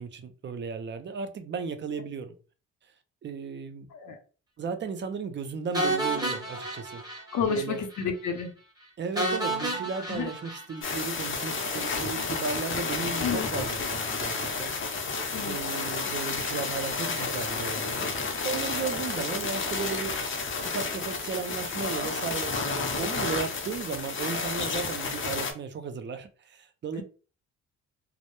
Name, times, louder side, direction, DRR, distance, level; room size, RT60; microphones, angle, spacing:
voice 1, 0.0-2.4 3.2-3.9 4.6-7.0 7.5-7.8 9.0-14.7 15.5-18.1 18.4-20.2 20.6-27.0, right 5 dB, 40° right, 0.4 m, -35 dB
sound 1, 5.7-7.7 7.9-8.0 8.4-8.5 9.2-11.5, right 2 dB, 15° right, 0.8 m, -31 dB
voice 2, 7.3-8.5 10.1-10.3 13.2-13.5 15.3-15.6, left 6 dB, 75° left, 0.7 m, -30 dB
sound 2, 10.8-25.5, left 4 dB, 40° left, 0.6 m, -31 dB
2.1 x 2.0 x 2.9 m
cardioid pair, 90°, 30 cm